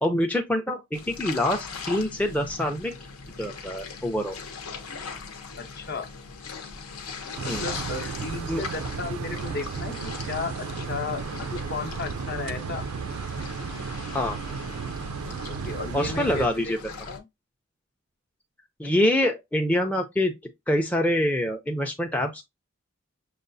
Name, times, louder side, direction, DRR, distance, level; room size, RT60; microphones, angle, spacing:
voice 1, 0.0-2.9 3.4-4.4 7.5-7.6 8.5-8.6 14.1-14.4 15.9-16.8 18.8-20.3 20.7-22.4, left 1 dB, 5° left, 0.4 m, -25 dB
Seashore Atmos LW, 0.9-17.2, left 5 dB, 85° left, 0.9 m, -39 dB
voice 2, 5.6-6.1 7.4-12.8 15.5-16.7 17.1-17.2, left 4 dB, 45° left, 0.7 m, -34 dB
sound 1, 7.3-16.5, right 6 dB, 75° right, 0.4 m, -34 dB
6.5 x 2.3 x 2.6 m
head